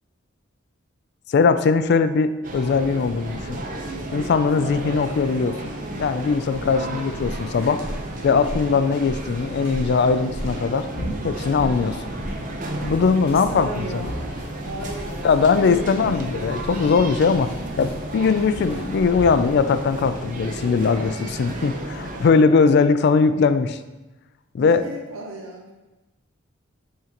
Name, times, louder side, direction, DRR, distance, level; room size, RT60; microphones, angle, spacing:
voice 1, 1.3-3.6 4.1-5.7 6.0-7.8 8.2-10.9 11.2-12.0 12.4-13.7 13.9-14.0 15.2-17.5 17.8-23.8 24.5-24.8, left 5 dB, 55° left, 12 dB, 0.3 m, -20 dB
sound 1, 2.4-22.3, right 1 dB, 40° right, 0.7 m, -33 dB
sound 2, 3.2-19.5, equal, 10° right, 2.0 m, -37 dB
sound 3, 4.4-18.9, equal, 30° left, 0.9 m, -44 dB
voice 2, 6.7-7.0 13.3-14.2 14.6-16.3 24.6-25.7, right 1 dB, 75° right, 0 dB, 0.8 m, -35 dB
8.7 x 3.7 x 2.9 m, 1.1 s
head